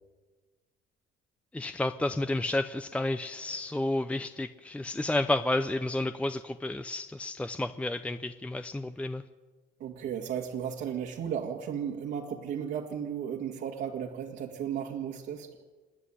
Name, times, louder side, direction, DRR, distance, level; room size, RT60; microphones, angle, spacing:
voice 1, 1.5-9.2, left 2 dB, 5° left, 10 dB, 0.6 m, -31 dB
voice 2, 9.8-15.6, right 8 dB, 70° right, -1 dB, 2.1 m, -35 dB
27.5 x 9.9 x 9.9 m, 1.3 s
cardioid pair, 125°, 19 cm